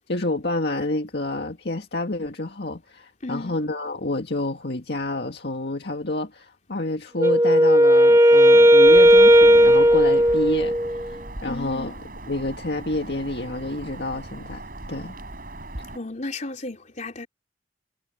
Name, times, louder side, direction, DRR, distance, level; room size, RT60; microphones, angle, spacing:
voice 1, 0.0-12.0 12.3-14.6 14.9-15.1, left 2 dB, 60° left, 2.0 m, -29 dB
voice 2, 3.2-3.5 11.4-11.9 15.9-17.3, left 2 dB, 40° left, 3.6 m, -33 dB
Wind instrument woodwind instrument, 7.2-11.1, equal, 15° right, 1.5 m, -14 dB
Bird vocalization bird call bird song, 8.8-16.0, right 2 dB, 50° right, 7.9 m, -39 dB
head